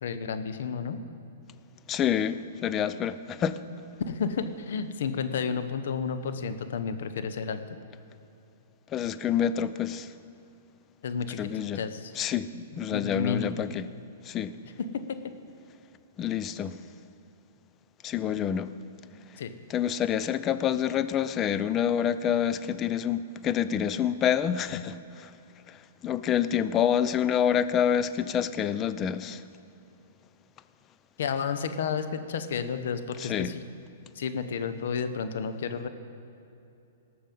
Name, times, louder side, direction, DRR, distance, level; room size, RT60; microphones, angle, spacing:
voice 1, 0.0-1.0 4.1-7.6 11.0-12.1 12.5-13.5 14.9-15.2 19.4-19.5 31.2-33.6 34.2-35.9, left 6 dB, 70° left, 9 dB, 1.0 m, -31 dB
voice 2, 1.9-3.6 8.9-10.1 11.4-11.8 12.2-12.5 12.7-13.9 14.2-14.5 16.2-16.8 18.0-18.7 19.7-25.3 25.7-29.4 33.2-33.5, left 9 dB, 25° left, 13 dB, 0.5 m, -27 dB
19.0 x 6.8 x 5.4 m, 2.8 s
hypercardioid pair, 130°, 0 cm